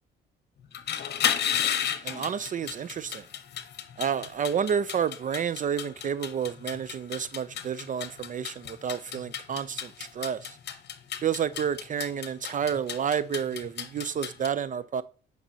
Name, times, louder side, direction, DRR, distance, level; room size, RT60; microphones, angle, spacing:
sound 1, 0.6-14.5, left 9 dB, 60° left, 0.9 m, -33 dB
voice 1, 2.0-3.3 4.0-10.6 11.2-15.0, right 8 dB, 40° right, 0.4 m, -30 dB
8.7 x 5.3 x 2.7 m
cardioid pair, 90°, 20 cm